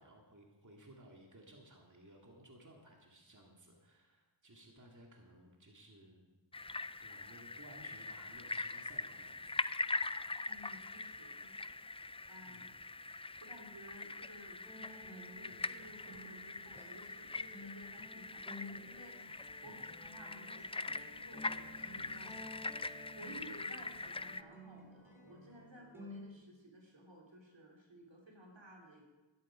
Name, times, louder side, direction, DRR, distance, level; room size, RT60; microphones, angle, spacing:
voice 1, 0.0-6.2 7.0-9.4 12.4-12.8 19.6-19.8 22.3-22.4, right 1 dB, 40° right, 0 dB, 2.2 m, -59 dB
sound 1, 6.5-24.4, left 3 dB, 15° left, 0.3 m, -42 dB
voice 2, 10.5-12.6 13.4-22.3 23.1-29.0, equal, 75° right, -1 dB, 2.9 m, -56 dB
sound 2, 14.6-26.3, left 1 dB, 5° right, 4.0 m, -54 dB
13.0 x 11.0 x 5.0 m, 1.2 s
wide cardioid pair, 45°, 45 cm